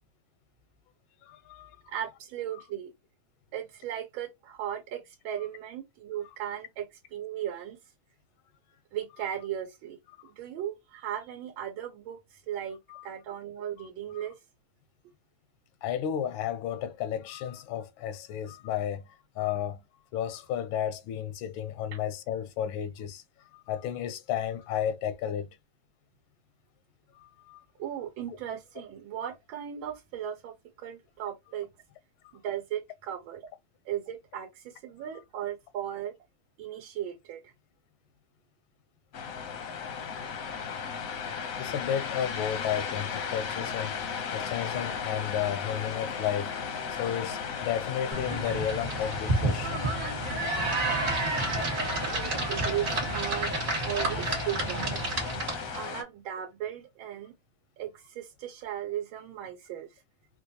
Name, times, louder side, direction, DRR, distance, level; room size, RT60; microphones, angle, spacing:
voice 1, 1.2-1.8 12.9-13.1 13.8-13.9 14.1-14.2 15.8-19.0 19.4-19.8 20.1-23.2 23.5-25.5 27.2-27.6 28.3-28.4 41.6-43.9 44.3-46.5 47.0-49.8, left 10 dB, 85° left, 1.4 m, -33 dB
voice 2, 1.9-2.9 3.5-7.8 8.9-10.0 10.2-14.3 27.8-31.7 32.3-33.4 33.8-36.1 36.6-37.5 52.5-53.5 53.8-55.0 55.7-57.3 57.8-59.9, right 10 dB, 85° right, 1.5 m, -37 dB
sound 1, 39.1-56.0, left 6 dB, 65° left, 0.9 m, -36 dB
sound 2, 48.1-55.8, right 2 dB, 40° right, 1.6 m, -30 dB
4.4 x 2.2 x 2.7 m
omnidirectional pair, 2.1 m